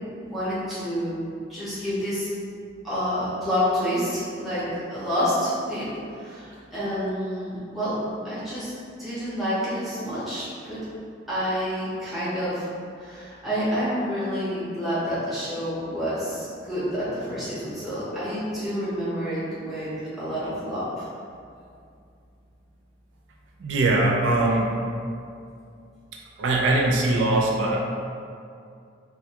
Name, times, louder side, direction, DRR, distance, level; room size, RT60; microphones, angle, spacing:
voice 1, 0.2-1.2 1.5-2.3 2.8-8.7 9.0-10.8 11.3-12.7 13.0-21.0, equal, ahead, -12 dB, 0.7 m, -28 dB
voice 2, 23.6-24.7 26.4-27.8, right 2 dB, 85° right, -2 dB, 0.3 m, -21 dB
2.3 x 2.2 x 2.8 m, 2.4 s
head